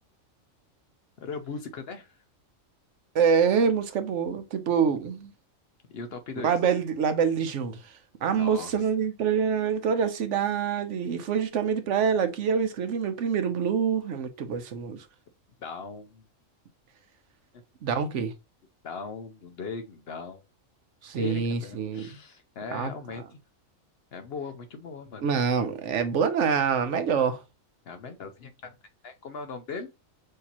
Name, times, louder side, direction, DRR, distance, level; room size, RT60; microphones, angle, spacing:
voice 1, 1.2-2.2 5.9-6.6 8.3-8.7 15.6-16.3 18.8-20.4 21.2-23.4 24.1-25.3 27.9-28.8 29.0-29.9, left 4 dB, 60° left, 0.7 m, -38 dB
voice 2, 3.1-5.3 6.4-15.0 17.8-18.3 21.0-22.1 22.7-22.9 25.2-27.4, right 6 dB, 70° right, 1.0 m, -26 dB
6.4 x 2.8 x 2.9 m
omnidirectional pair, 1.4 m